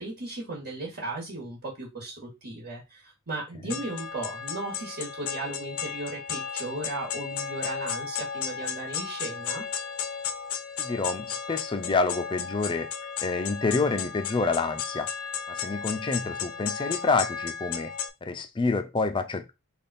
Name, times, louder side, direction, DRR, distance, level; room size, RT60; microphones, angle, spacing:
voice 1, 0.0-9.6, right 2 dB, 50° right, 1.4 m, -36 dB
sound 1, 3.7-18.1, left 7 dB, 75° left, 0.5 m, -34 dB
voice 2, 10.8-12.9 13.2-15.1 15.5-17.9 18.2-19.5, left 3 dB, 20° left, 0.4 m, -28 dB
3.4 x 2.4 x 4.1 m
head